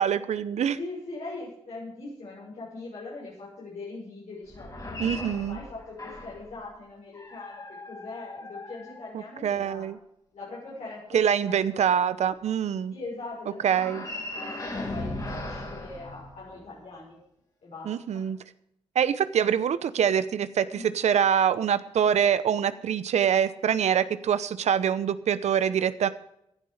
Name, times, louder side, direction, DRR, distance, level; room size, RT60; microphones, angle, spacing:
voice 1, 0.0-0.8 5.0-5.6 9.1-10.0 11.1-12.9 13.6-14.1 17.8-18.4 18.9-26.1, right 8 dB, 90° right, 14 dB, 0.8 m, -25 dB
voice 2, 0.7-9.9 10.3-11.9 12.9-13.8 14.1-17.2 17.6-18.2 20.7-20.9, left 3 dB, 75° left, -6 dB, 6.0 m, -41 dB
sound 1, 4.5-6.5 7.1-9.5 13.6-16.8, left 2 dB, 35° left, 4.2 m, -38 dB
15.5 x 11.5 x 5.0 m, 0.76 s
cardioid pair, 70°, 11 cm